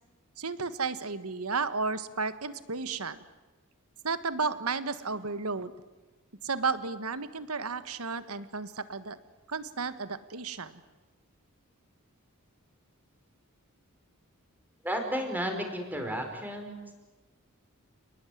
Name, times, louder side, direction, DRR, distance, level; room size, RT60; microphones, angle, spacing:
voice 1, 0.4-3.2 4.0-5.7 6.4-9.2 9.5-10.8, right 4 dB, 75° right, 12 dB, 1.6 m, -33 dB
voice 2, 14.8-16.9, equal, 10° right, 4 dB, 4.8 m, -33 dB
30.0 x 20.0 x 9.4 m, 1.2 s
head